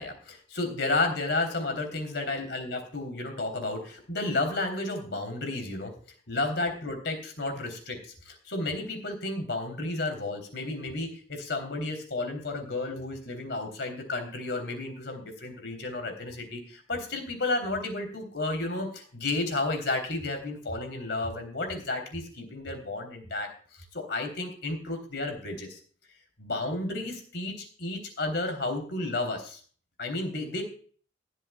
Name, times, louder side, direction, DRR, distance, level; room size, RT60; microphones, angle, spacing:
voice 1, 0.0-5.9 6.3-23.5 23.9-25.8 26.4-29.6 30.0-30.6, left 2 dB, 65° left, 5 dB, 3.5 m, -32 dB
21.5 x 8.2 x 2.3 m, 0.43 s
head